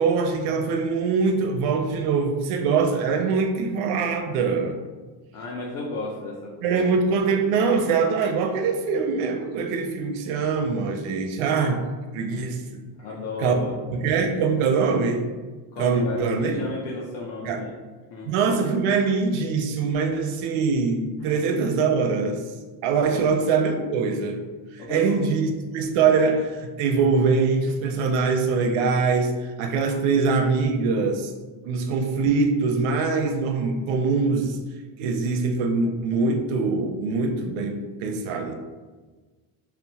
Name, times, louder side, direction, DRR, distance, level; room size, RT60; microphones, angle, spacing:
voice 1, 0.0-4.8 6.6-11.8 12.1-12.8 13.4-13.5 13.9-15.2 15.8-16.7 17.4-17.6 18.3-22.4 22.8-24.4 24.7-29.3 29.6-31.3 31.6-34.6 35.0-38.5, right 4 dB, 90° right, 5 dB, 0.6 m, -23 dB
voice 2, 5.3-6.9 13.0-14.0 15.7-17.7 18.1-18.3 23.1-23.3 24.8-25.2, left 3 dB, 65° left, -3 dB, 0.5 m, -34 dB
2.8 x 2.0 x 2.7 m, 1.3 s
cardioid pair, 160°, 48 cm